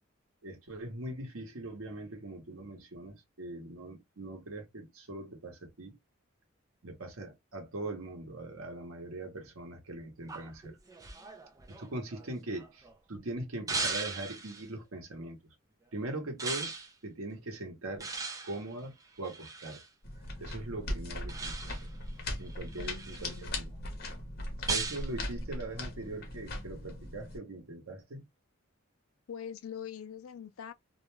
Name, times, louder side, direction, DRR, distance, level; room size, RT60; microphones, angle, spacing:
voice 1, 0.4-6.0 6.8-10.8 11.8-15.4 15.9-16.7 17.0-18.1 18.4-19.8 20.4-21.8 22.4-23.7 24.7-28.2, right 2 dB, 85° right, 0.9 m, -41 dB
sound 1, 10.3-12.9 13.7-14.7 16.4-16.9 18.0-19.9 21.3-22.0 22.5-23.4 24.7-25.1, right 4 dB, 15° right, 0.4 m, -38 dB
sound 2, 20.0-27.4, left 1 dB, 50° left, 0.9 m, -39 dB
voice 2, 22.8-23.5 29.3-30.7, left 8 dB, 85° left, 0.4 m, -43 dB
2.4 x 2.1 x 3.0 m
head